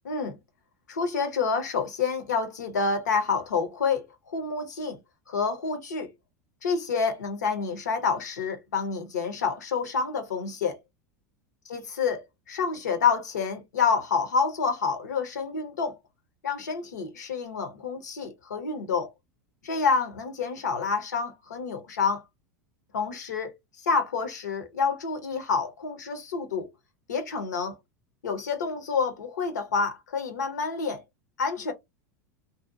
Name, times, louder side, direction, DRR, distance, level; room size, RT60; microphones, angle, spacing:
voice 1, 0.0-0.4 0.9-5.0 5.3-6.1 6.6-10.8 11.7-16.0 16.4-19.1 19.6-22.2 22.9-26.7 27.1-27.8 28.2-31.0 31.4-31.7, left 5 dB, 75° left, 0.7 m, -28 dB
2.6 x 2.1 x 2.5 m
figure-of-eight pair, 85°, 9 cm